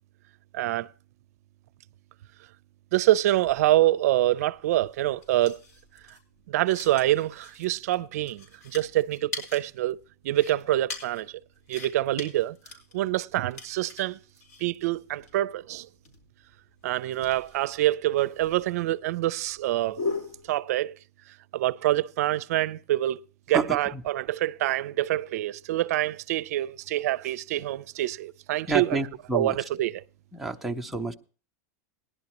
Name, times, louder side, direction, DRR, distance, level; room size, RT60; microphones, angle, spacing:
voice 1, 0.5-0.9 2.9-5.6 6.5-10.0 10.2-11.3 11.7-12.6 12.9-14.2 14.6-15.9 16.8-20.0 20.5-20.9 21.5-23.2 23.5-29.9, right 15 dB, 70° right, 0.5 m, -26 dB
sound 1, 3.4-20.5, left 3 dB, 80° left, 4.3 m, -41 dB
voice 2, 23.5-24.0 28.7-29.6 30.3-31.1, right 3 dB, ahead, 0.7 m, -29 dB
18.5 x 11.0 x 3.0 m
supercardioid pair, 155°, 9 cm